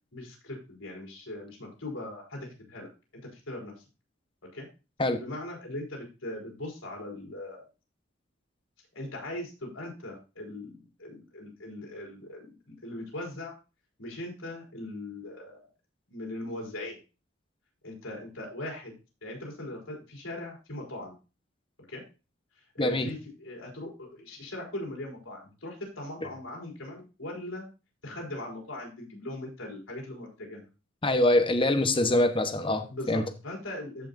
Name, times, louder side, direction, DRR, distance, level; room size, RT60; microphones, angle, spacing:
voice 1, 0.1-2.9 3.3-3.7 4.5-4.7 5.2-7.6 8.9-13.5 14.0-15.7 16.1-17.0 17.8-18.9 19.2-21.1 21.9-22.0 22.7-27.7 28.0-30.6 32.9-34.1, left 1 dB, 85° left, -1 dB, 4.2 m, -40 dB
voice 2, 22.8-23.1 31.0-33.2, left 1 dB, 25° left, 8 dB, 1.0 m, -24 dB
14.0 x 5.7 x 2.6 m, 0.31 s
head